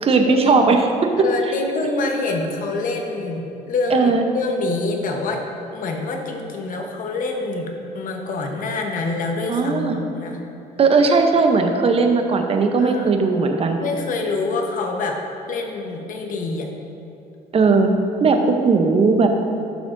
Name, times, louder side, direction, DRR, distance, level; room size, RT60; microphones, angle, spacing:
voice 1, 0.0-0.8 3.9-4.2 9.5-10.0 10.8-13.8 17.5-17.9 18.2-19.3, right 4 dB, 35° right, 5 dB, 0.8 m, -17 dB
voice 2, 1.2-5.4 5.7-10.4 12.8-13.1 13.8-15.2 15.5-16.7, left 3 dB, 50° left, 2 dB, 1.0 m, -26 dB
12.0 x 6.0 x 2.6 m, 2.7 s
cardioid pair, 110°, 17 cm